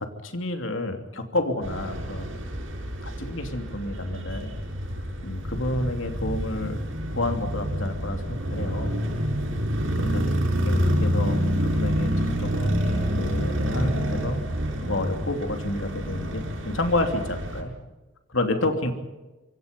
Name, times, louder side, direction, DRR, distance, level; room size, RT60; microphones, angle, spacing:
voice 1, 0.0-2.3 3.0-4.6 5.2-6.8 7.1-8.9 10.0-14.4 14.8-17.7 18.3-18.9, left 2 dB, 75° left, 6 dB, 3.0 m, -30 dB
sound 1, 1.6-17.6, equal, 75° right, 7.0 m, -27 dB
26.5 x 25.5 x 5.4 m, 1.1 s
head